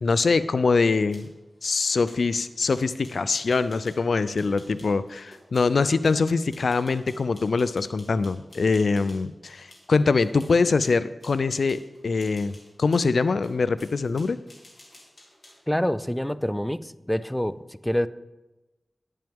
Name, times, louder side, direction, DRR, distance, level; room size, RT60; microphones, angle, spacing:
voice 1, 0.0-1.3 1.6-12.5 12.8-14.4, left 4 dB, 75° left, 15 dB, 0.4 m, -23 dB
sound 1, 0.9-9.3 9.7-15.7, left 1 dB, 50° left, 2.5 m, -53 dB
voice 2, 15.7-18.1, equal, 5° left, 15 dB, 0.4 m, -26 dB
10.5 x 10.0 x 3.6 m, 1.0 s
wide cardioid pair, 90°, 0 cm